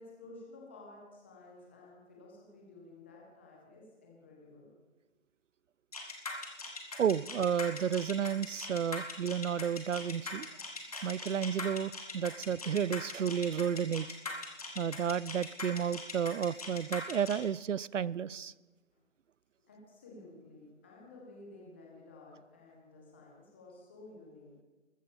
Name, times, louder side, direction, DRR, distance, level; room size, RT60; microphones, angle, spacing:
voice 1, 0.0-4.7 6.7-7.0 19.7-24.5, left 2 dB, 10° left, -2 dB, 1.5 m, -53 dB
sound 1, 5.9-17.4, left 3 dB, 30° left, 1.7 m, -41 dB
voice 2, 7.0-10.5 11.0-14.1 14.8-18.5, right 8 dB, 75° right, 21 dB, 0.5 m, -32 dB
14.0 x 9.4 x 7.1 m, 1.2 s
figure-of-eight pair, 165°, 37 cm